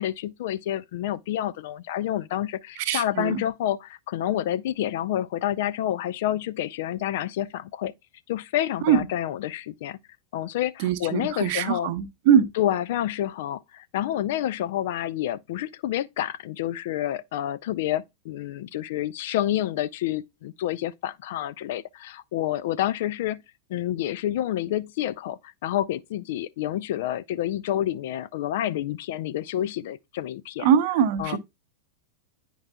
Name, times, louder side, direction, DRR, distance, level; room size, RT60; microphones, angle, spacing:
voice 1, 0.0-7.9 8.3-10.0 10.3-11.9 12.6-23.4 23.7-30.7 31.2-31.4, left 12 dB, 55° left, 0.3 m, -28 dB
voice 2, 2.8-3.4 8.8-9.0 10.8-12.5 30.6-31.4, right 8 dB, 45° right, 0.8 m, -22 dB
9.5 x 4.6 x 2.2 m
figure-of-eight pair, 90°, 0 cm